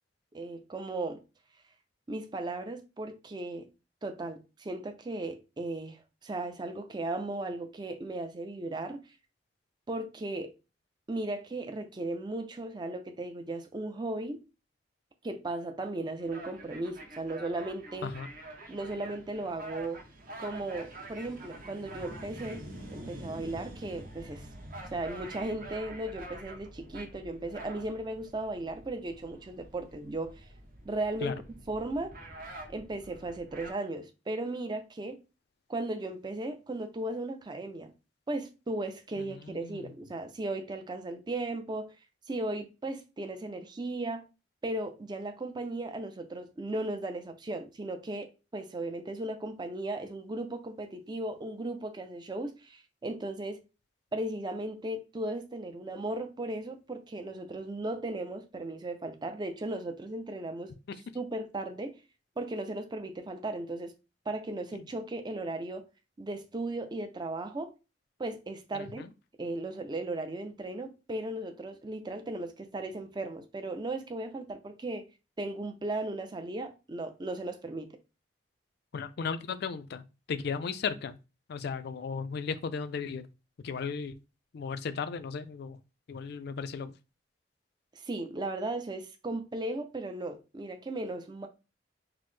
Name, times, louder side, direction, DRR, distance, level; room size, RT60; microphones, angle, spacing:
voice 1, 0.3-1.2 2.1-3.7 4.0-9.1 9.9-10.5 11.1-14.4 15.2-18.1 18.7-20.0 20.4-24.5 24.9-30.4 30.8-31.4 31.7-32.1 32.7-35.2 35.7-37.9 38.3-42.0 42.3-44.2 44.6-53.6 54.1-60.7 61.1-62.0 62.4-63.9 64.3-65.8 66.2-67.7 68.2-69.0 69.4-75.1 75.4-77.9 88.0-91.5, right 2 dB, 25° right, 0.4 m, -36 dB
sound 1, 16.2-33.7, right 1 dB, 50° right, 0.8 m, -46 dB
voice 2, 39.2-39.8 60.9-61.0 64.7-64.8 68.7-69.1 78.9-81.2 81.5-83.3 83.6-84.2 84.5-85.8 86.1-86.9, left 5 dB, 60° left, 0.4 m, -36 dB
5.9 x 2.0 x 3.2 m
head